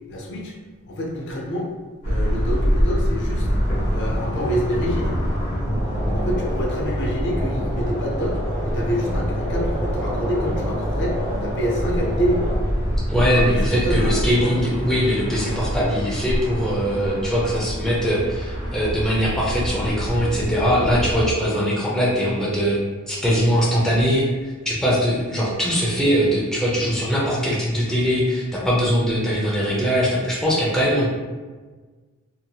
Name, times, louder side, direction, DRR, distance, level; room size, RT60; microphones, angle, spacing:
voice 1, 0.1-0.5 0.9-1.7 2.0-3.5 3.9-5.2 6.0-8.4 8.6-12.5 13.2-14.5, equal, 50° left, -2 dB, 0.5 m, -27 dB
sound 1, 2.0-21.3, equal, 30° left, 0.9 m, -25 dB
voice 2, 13.1-22.8 23.1-31.2, equal, ahead, -6 dB, 0.5 m, -21 dB
2.8 x 2.7 x 2.3 m, 1.3 s
head